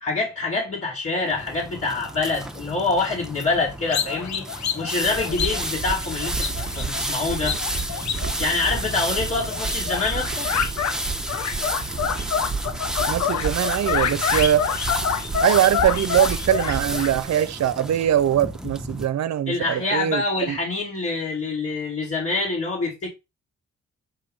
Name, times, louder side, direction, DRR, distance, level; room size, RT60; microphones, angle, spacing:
voice 1, 0.0-4.5 4.7-6.5 6.8-7.6 8.4-10.5 19.5-23.1, left 3 dB, 50° left, 2.6 m, -26 dB
sound 1, 1.3-19.1, right 1 dB, ahead, 0.8 m, -32 dB
sound 2, 3.9-9.1 9.5-11.0 11.3-17.1, left 7 dB, 70° left, 0.7 m, -27 dB
sound 3, 5.0-17.2, right 4 dB, 35° right, 1.4 m, -33 dB
voice 2, 13.1-14.7 15.4-20.6, right 11 dB, 65° right, 0.6 m, -22 dB
7.6 x 2.6 x 5.0 m
cardioid pair, 85°, 29 cm